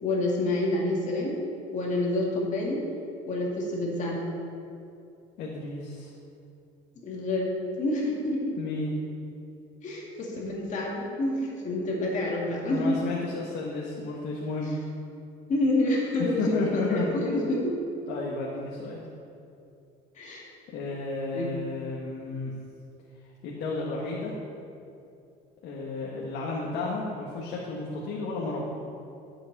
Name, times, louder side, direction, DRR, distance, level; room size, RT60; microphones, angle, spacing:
voice 1, 0.0-1.3 1.7-2.8 3.3-4.3 7.0-8.5 9.8-13.0 15.5-16.4 16.7-17.7 20.2-20.4 21.3-21.5, left 1 dB, 40° left, -3 dB, 2.3 m, -28 dB
voice 2, 5.4-6.1 8.6-8.9 11.8-11.9 12.7-14.8 16.2-17.4 18.1-19.1 20.7-22.5 23.4-24.3 25.6-28.8, left 3 dB, 60° left, -3 dB, 1.6 m, -32 dB
12.5 x 7.8 x 4.2 m, 2.6 s
cardioid pair, 125°, 19 cm